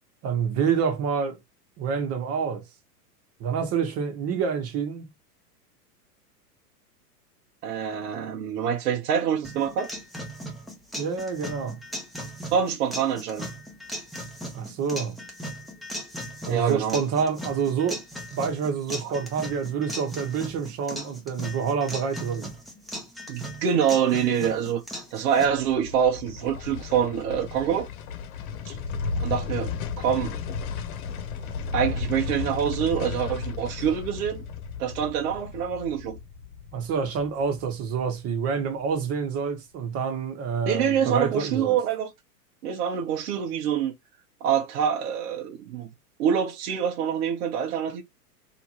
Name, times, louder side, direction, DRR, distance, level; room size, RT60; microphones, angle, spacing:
voice 1, 0.2-1.4 1.8-2.6 3.4-5.1 10.9-11.8 14.5-15.2 16.4-18.0 18.3-22.5 36.7-41.8, right 6 dB, 30° right, 1.2 m, -27 dB
voice 2, 7.6-9.9 12.5-13.5 16.5-17.0 19.0-19.2 23.3-24.8 25.1-27.9 28.7-28.8 29.2-30.4 31.7-34.4 34.8-36.2 40.7-42.1 42.6-43.9 44.4-45.9 46.2-48.0, right 8 dB, 60° right, 1.1 m, -25 dB
sound 1, 9.4-25.5, equal, ahead, 0.9 m, -38 dB
sound 2, 25.3-38.5 38.8-38.9, left 5 dB, 60° left, 1.2 m, -34 dB
3.4 x 2.9 x 2.9 m
hypercardioid pair, 120°, 48 cm